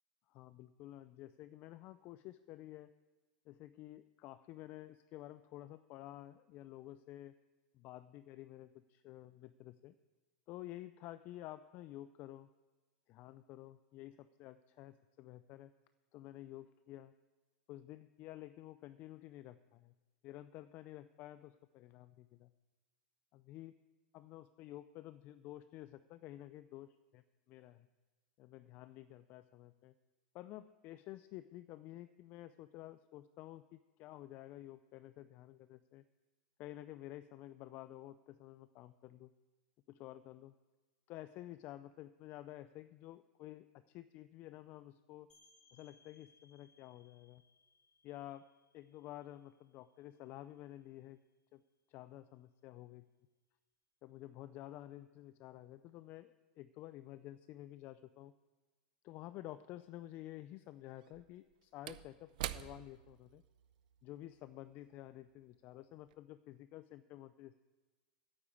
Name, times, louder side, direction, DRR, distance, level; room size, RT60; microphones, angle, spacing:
voice 1, 0.3-2.9 3.5-7.3 7.7-9.9 10.5-12.5 13.1-15.7 16.1-17.1 17.7-19.9 20.2-22.5 23.3-23.7 24.1-26.9 27.1-27.2 27.5-27.9 28.4-29.9 30.3-36.0 36.6-39.3 39.9-40.5 41.1-45.3 45.7-47.4 48.0-48.5 48.7-51.2 51.5-51.6 51.9-53.0 54.0-58.3 59.0-63.4 64.0-67.6, left 14 dB, 40° left, 13 dB, 0.5 m, -51 dB
sound 1, 45.3-50.8, left 3 dB, 20° left, 4.1 m, -70 dB
Slam / Wood, 59.4-59.5 61.0-65.7 66.0-66.1, right 14 dB, 70° right, 0.6 m, -48 dB
9.3 x 8.7 x 8.8 m, 1.2 s
supercardioid pair, 130°, 5 cm